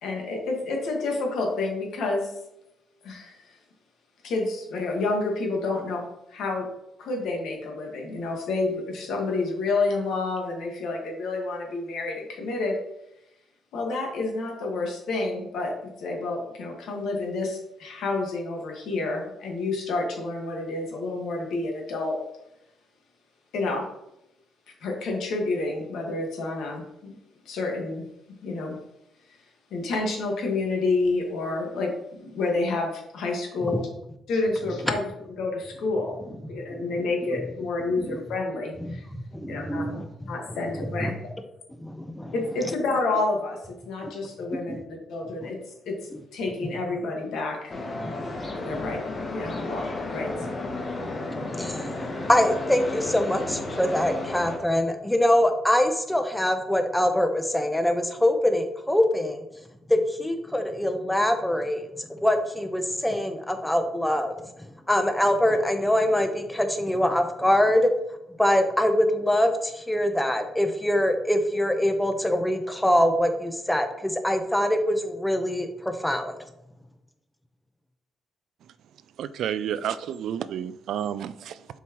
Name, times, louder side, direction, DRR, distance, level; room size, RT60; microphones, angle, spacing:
voice 1, 0.0-2.3 3.0-3.4 4.2-6.0 6.3-6.7 7.0-12.8 13.7-22.2 23.5-23.8 24.8-27.1 27.4-28.0 28.4-28.8 29.7-33.9 34.3-35.1 35.4-36.1 36.5-39.1 39.5-39.9 40.2-41.1 42.3-45.6 45.8-46.0 46.3-47.7 48.6-49.0 49.3-49.8 50.1-50.3, left 3 dB, 80° left, 0 dB, 1.7 m, -29 dB
voice 2, 38.8-40.3 40.7-41.1 41.8-42.3 44.0-44.1 44.7-44.8 45.4-45.5 48.0-49.0 49.4-49.7 50.3-50.5 51.0-59.4 59.9-64.3 64.9-67.9 68.4-76.3, left 1 dB, 5° left, 6 dB, 0.8 m, -24 dB
sound 1, 47.7-54.6, left 2 dB, 35° left, 1.1 m, -33 dB
voice 3, 79.2-81.7, right 9 dB, 75° right, 14 dB, 0.3 m, -31 dB
7.0 x 4.6 x 3.0 m, 0.86 s
cardioid pair, 90°, 0 cm